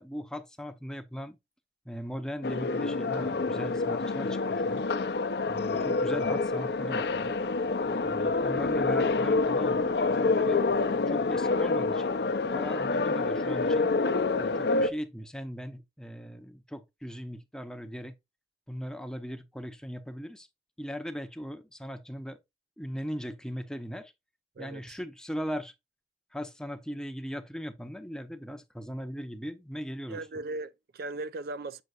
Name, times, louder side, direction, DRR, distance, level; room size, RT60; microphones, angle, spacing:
voice 1, 0.0-1.4 1.8-4.9 5.5-7.4 8.0-10.6 11.1-12.2 12.5-13.9 14.4-18.2 18.7-20.5 20.8-22.4 22.8-24.1 24.6-25.7 26.3-30.3, equal, 5° left, 0.6 m, -39 dB
sound 1, 2.4-14.9, left 3 dB, 65° left, 0.6 m, -27 dB
voice 2, 5.7-6.1 24.6-25.0 30.1-31.8, right 2 dB, 55° right, 0.4 m, -39 dB
7.8 x 5.7 x 2.4 m
head